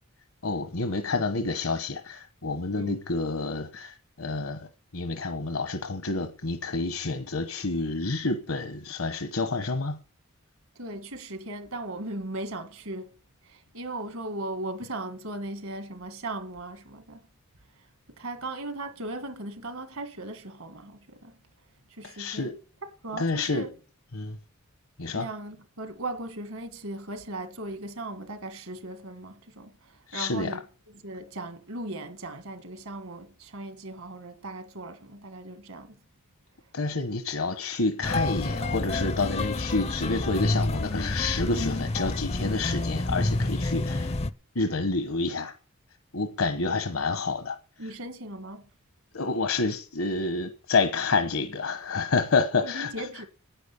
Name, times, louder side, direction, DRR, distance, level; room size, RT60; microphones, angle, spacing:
voice 1, 0.4-4.7 4.9-10.0 22.0-22.5 23.1-23.6 24.1-24.4 25.0-25.3 30.1-30.6 36.7-44.2 44.5-45.5 46.1-47.6 49.1-53.1, left 3 dB, 70° left, 1.1 m, -28 dB
voice 2, 10.8-13.2 13.4-17.2 18.2-21.3 21.9-22.5 22.8-23.7 25.1-30.6 30.9-36.0 47.8-48.7 52.6-53.3, right 2 dB, 70° right, 1.7 m, -38 dB
sound 1, 38.0-44.3, left 2 dB, 30° left, 0.5 m, -28 dB
10.0 x 9.5 x 8.4 m
head